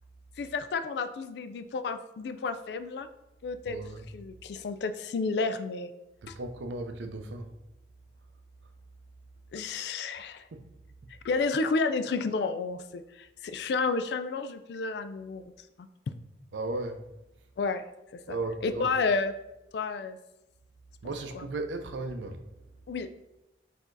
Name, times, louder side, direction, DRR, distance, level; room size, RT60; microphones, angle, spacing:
voice 1, 0.4-3.1 3.4-3.8 4.1-5.9 6.3-6.4 9.5-10.5 11.2-15.4 15.8-15.9 17.6-17.8 18.1-18.4 18.6-19.3 19.7-20.2 22.9-23.1, left 4 dB, 65° left, 0.3 m, -31 dB
voice 2, 3.7-4.1 6.2-7.5 8.6-8.7 10.5-11.1 16.5-17.1 18.3-18.9 21.0-22.5, right 2 dB, 85° right, 0.5 m, -36 dB
4.4 x 2.7 x 4.5 m
head